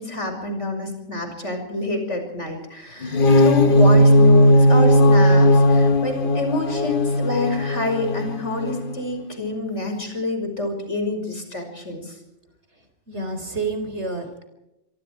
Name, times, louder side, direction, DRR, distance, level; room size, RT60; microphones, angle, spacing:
voice 1, 0.0-12.2, left 2 dB, 60° left, 4 dB, 6.2 m, -27 dB
sound 1, 3.0-9.0, left 1 dB, 45° left, 1.3 m, -16 dB
voice 2, 13.1-14.4, right 3 dB, 55° right, 7 dB, 4.7 m, -29 dB
26.5 x 23.5 x 4.7 m, 0.90 s
omnidirectional pair, 1.4 m